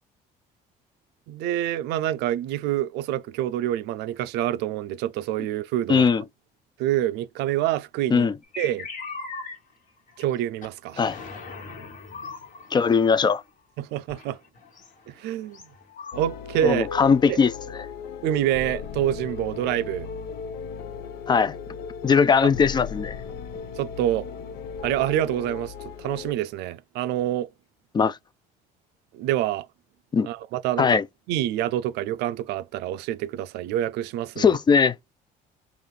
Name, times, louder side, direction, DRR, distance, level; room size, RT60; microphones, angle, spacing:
voice 1, 1.3-6.0 6.8-8.3 8.6-8.9 10.2-11.0 13.8-14.4 15.1-15.6 16.2-16.9 17.3-17.4 18.2-20.1 23.8-24.3 24.8-27.5 29.1-29.7 30.2-31.0 31.3-34.5, right 12 dB, 90° right, 0.4 m, -27 dB
voice 2, 5.9-6.2 8.1-8.4 11.0-11.2 12.7-13.4 16.6-17.5 21.3-21.6 22.0-23.2 27.9-28.2 30.1-30.3 30.8-31.1 34.4-34.9, left 6 dB, 25° left, 0.3 m, -19 dB
sound 1, 8.4-9.6 9.9-10.3 10.6-10.7 10.9-13.5 14.1-16.4, left 4 dB, 50° left, 1.3 m, -40 dB
sound 2, 16.1-26.3, left 6 dB, 85° left, 0.6 m, -36 dB
3.9 x 2.5 x 3.3 m
cardioid pair, 110°, 17 cm